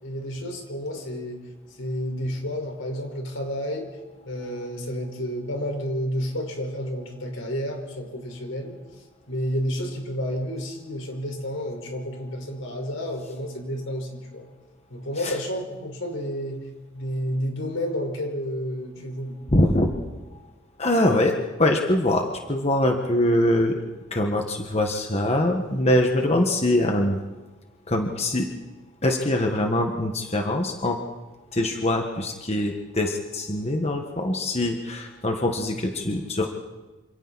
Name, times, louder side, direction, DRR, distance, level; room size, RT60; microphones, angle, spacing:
voice 1, 0.0-1.4 1.8-3.9 4.2-8.8 9.3-14.5 14.9-16.7 16.9-19.4, equal, 85° left, 2 dB, 5.1 m, -30 dB
voice 2, 19.5-19.9 20.8-23.8 24.1-27.2 27.9-28.5 29.0-31.0 31.5-36.5, left 1 dB, 30° left, 3 dB, 1.6 m, -23 dB
27.5 x 27.5 x 4.3 m, 1.2 s
head